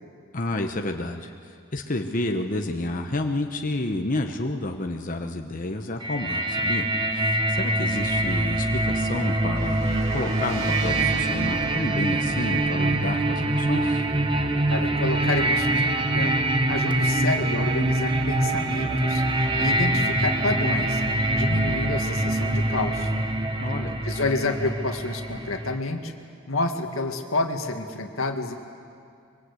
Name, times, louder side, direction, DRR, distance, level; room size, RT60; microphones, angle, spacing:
voice 1, 0.3-14.0 23.6-23.9, left 2 dB, 40° left, 4 dB, 1.1 m, -30 dB
sound 1, 6.0-25.8, right 1 dB, 25° right, 1.2 m, -24 dB
sound 2, 9.6-15.6, right 1 dB, 70° right, 2.4 m, -40 dB
voice 2, 14.7-16.3 16.7-21.0 21.3-23.1 24.0-26.1 26.5-28.5, left 2 dB, 85° left, 5 dB, 1.9 m, -29 dB
24.5 x 23.0 x 8.3 m, 2.4 s
head